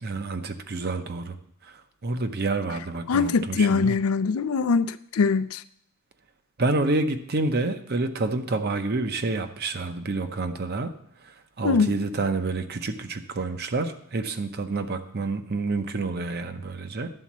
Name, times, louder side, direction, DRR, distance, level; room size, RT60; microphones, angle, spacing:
voice 1, 0.0-1.4 2.0-4.0 6.6-10.9 11.6-17.1, right 3 dB, 50° right, 8 dB, 0.7 m, -28 dB
voice 2, 3.1-5.6 11.6-11.9, left 5 dB, 80° left, 14 dB, 0.4 m, -22 dB
11.0 x 4.2 x 7.3 m, 0.71 s
head